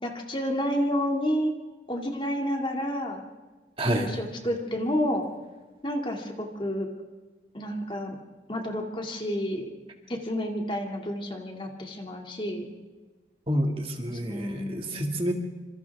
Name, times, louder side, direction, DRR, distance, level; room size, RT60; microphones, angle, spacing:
voice 1, 0.0-1.5 1.9-3.2 3.8-5.3 5.8-6.9 7.5-8.2 8.5-9.7 10.1-12.7 14.1-15.3, equal, 30° left, 1 dB, 2.4 m, -30 dB
voice 2, 3.8-4.1 13.5-15.3, right 1 dB, 30° right, 2 dB, 2.2 m, -28 dB
27.0 x 27.0 x 3.6 m, 1.3 s
head